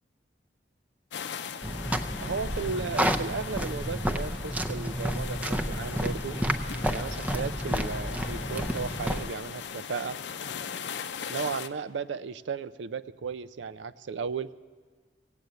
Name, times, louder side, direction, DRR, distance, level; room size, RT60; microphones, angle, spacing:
sound 1, 1.1-11.7, left 6 dB, 75° left, 0.6 m, -39 dB
sound 2, 1.6-9.2, equal, 10° right, 0.5 m, -31 dB
voice 1, 2.2-6.4 6.9-10.2 11.3-14.5, right 5 dB, 85° right, 14 dB, 0.4 m, -35 dB
17.0 x 8.4 x 7.8 m, 1.5 s
head